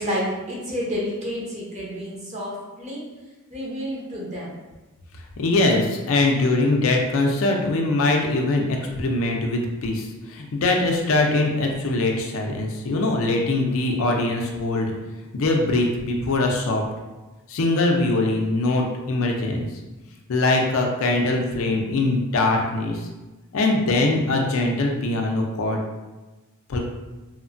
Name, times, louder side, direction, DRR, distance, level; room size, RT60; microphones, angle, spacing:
voice 1, 0.0-3.0 3.5-4.6, equal, 30° right, -5 dB, 0.7 m, -30 dB
voice 2, 5.4-14.9 15.3-16.8 17.5-19.7 20.3-23.1 23.5-25.8 26.7-26.8, left 2 dB, 70° left, 1 dB, 0.4 m, -22 dB
3.0 x 2.1 x 2.5 m, 1.1 s
head